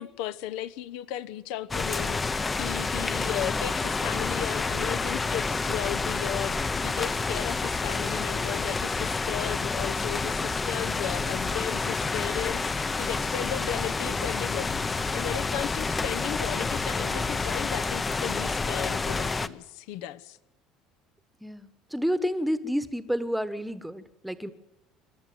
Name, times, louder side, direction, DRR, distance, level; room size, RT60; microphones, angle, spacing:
voice 1, 0.0-20.4, left 12 dB, 80° left, 1.0 m, -35 dB
sound 1, 1.7-19.5, left 4 dB, 15° left, 0.7 m, -29 dB
voice 2, 21.4-24.5, equal, ahead, 1.2 m, -30 dB
27.0 x 13.0 x 9.3 m
cardioid pair, 165°, 0 cm